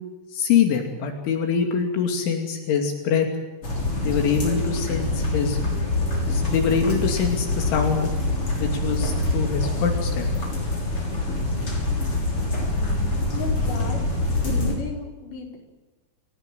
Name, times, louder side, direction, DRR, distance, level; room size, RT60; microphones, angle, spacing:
voice 1, 0.3-3.3 4.0-5.6 6.2-8.1 8.6-10.3, left 6 dB, 80° left, 3 dB, 5.1 m, -24 dB
sound 1, 3.6-14.7, left 2 dB, 30° left, 6.6 m, -25 dB
voice 2, 13.3-15.6, left 4 dB, 45° left, 1 dB, 6.2 m, -33 dB
29.0 x 18.5 x 9.2 m, 1.2 s
omnidirectional pair, 5.4 m